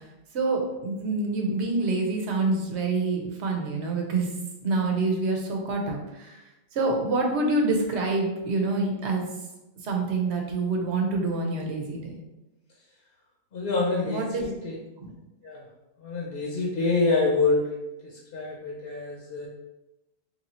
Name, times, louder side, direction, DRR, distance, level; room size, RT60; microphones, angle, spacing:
voice 1, 0.3-4.3 4.6-6.0 6.7-9.3 9.8-12.1 14.0-14.5 15.0-15.1, right 3 dB, 80° right, 1 dB, 1.1 m, -26 dB
voice 2, 13.5-14.7 15.4-15.6 16.0-17.8 18.3-19.5, left 3 dB, 60° left, -3 dB, 0.9 m, -26 dB
3.2 x 2.7 x 4.2 m, 0.98 s
omnidirectional pair, 1.1 m